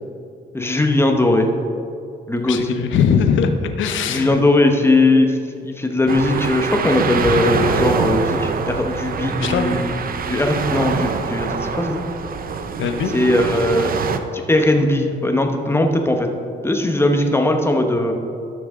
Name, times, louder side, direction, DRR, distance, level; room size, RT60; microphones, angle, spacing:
voice 1, 0.5-1.5 2.3-2.6 4.1-5.4 5.6-9.9 10.2-12.0 13.1-13.9 14.3-16.3 16.6-18.1, left 2 dB, 10° left, 4 dB, 1.0 m, -19 dB
voice 2, 2.4-3.5 3.8-4.4 9.4-9.7 12.8-13.1, left 7 dB, 75° left, 7 dB, 0.8 m, -20 dB
sound 1, 6.1-14.2, right 5 dB, 45° right, 0.7 m, -24 dB
13.5 x 6.2 x 3.7 m, 2.6 s
cardioid pair, 90°, 20 cm